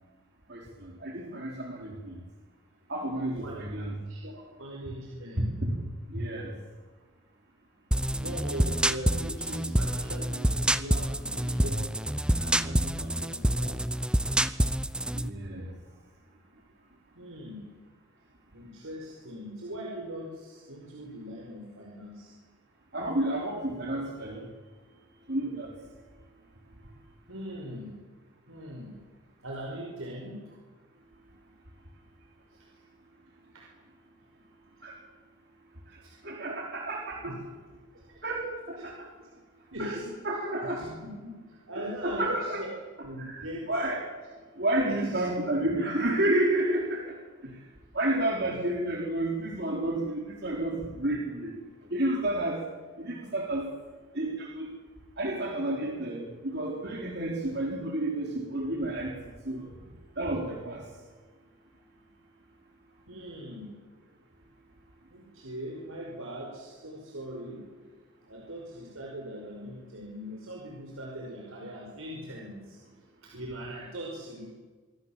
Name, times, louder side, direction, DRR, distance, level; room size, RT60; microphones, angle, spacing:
voice 1, 0.5-2.2 2.9-4.0 5.6-5.7 6.1-6.5 15.1-15.7 22.9-24.5 25.3-25.7 34.8-34.9 36.2-37.2 38.2-39.1 39.8-40.0 40.2-40.8 42.0-42.6 43.3-44.0 44.6-47.2 47.9-51.5 51.9-52.6 53.0-53.7 54.1-54.7 55.2-59.1 59.4-59.7 60.2-60.8, right 1 dB, 55° right, 0 dB, 3.8 m, -30 dB
voice 2, 4.1-5.4 8.2-11.9 12.4-13.8 17.2-17.7 18.5-22.3 27.3-27.9 28.5-28.9 29.4-30.3 32.5-32.7 33.5-33.6 34.8-34.9 36.0-36.2 37.2-37.4 37.9-38.2 39.7-40.1 40.5-41.3 41.7-42.8 43.0-43.6 45.0-45.2 47.4-47.5 63.1-63.7 65.1-67.6 68.3-72.8 73.2-74.5, right 1 dB, 90° right, -2 dB, 5.7 m, -40 dB
sound 1, 7.9-15.3, right 1 dB, 5° right, 0.7 m, -27 dB
25.5 x 24.0 x 7.5 m, 1.4 s
head